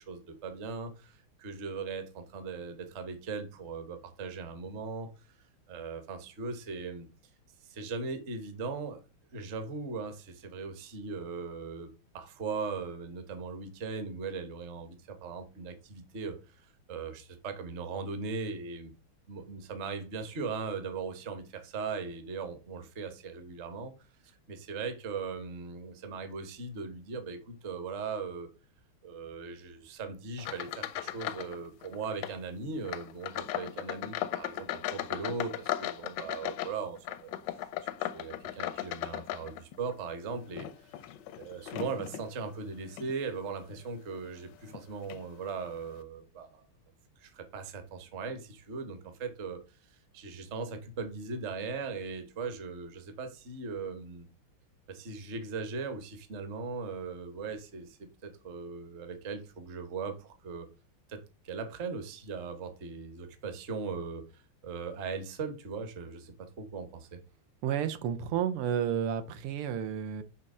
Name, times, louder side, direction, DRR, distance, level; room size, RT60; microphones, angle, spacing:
voice 1, 0.0-5.1 5.7-7.1 7.6-9.0 9.3-18.9 19.3-23.9 24.2-28.5 29.0-37.7 38.0-41.0 41.4-46.6 47.2-49.6 49.9-54.3 54.9-60.7 61.1-67.2, right 4 dB, 45° right, 1.0 m, -39 dB
sound 1, 30.4-31.6 31.8-32.4 32.8-39.9 40.4-42.3 42.9-43.1 43.7-43.8 44.7-44.8 45.1-45.2, left 12 dB, 75° left, 1.0 m, -37 dB
voice 2, 67.6-70.2, right 8 dB, 85° right, 1.7 m, -31 dB
6.2 x 3.8 x 5.4 m
omnidirectional pair, 2.4 m